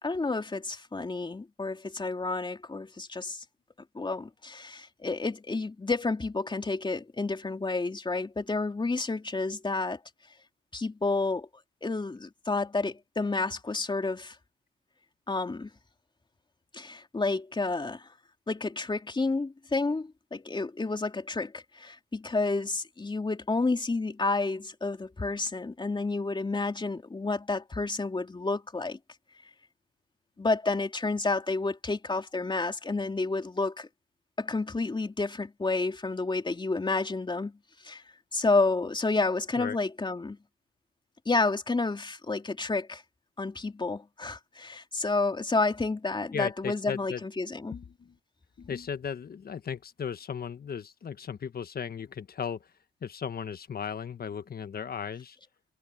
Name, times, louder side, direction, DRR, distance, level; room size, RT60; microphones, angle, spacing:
voice 1, 0.0-3.4 3.9-10.0 10.7-11.5 11.8-14.4 15.3-15.7 16.7-18.1 18.5-29.0 30.4-33.9 34.4-37.6 37.8-38.0 38.3-40.4 41.2-43.0 43.4-47.8, left 3 dB, 20° left, 3.3 m, -30 dB
voice 2, 46.3-47.2 47.7-48.1 48.6-52.6 53.0-55.4, left 7 dB, 45° left, 1.3 m, -36 dB
cardioid pair, 90°, 21 cm